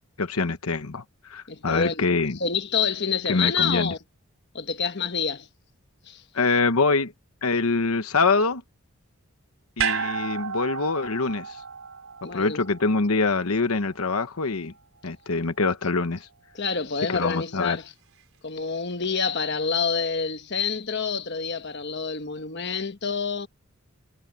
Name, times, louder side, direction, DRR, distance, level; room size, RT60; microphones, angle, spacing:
voice 1, 0.2-1.0 1.3-2.4 3.3-3.9 6.3-7.1 7.4-8.6 9.8-11.6 12.3-14.7 15.0-16.3 17.1-17.8, left 3 dB, 75° left, 1.1 m, -24 dB
voice 2, 1.5-2.1 2.4-4.0 4.5-5.5 6.1-6.2 12.2-12.6 16.5-17.9 18.4-23.5, left 5 dB, 50° left, 1.2 m, -27 dB
sound 1, 9.8-14.1 14.4-14.5, right 7 dB, 70° right, 4.6 m, -32 dB
head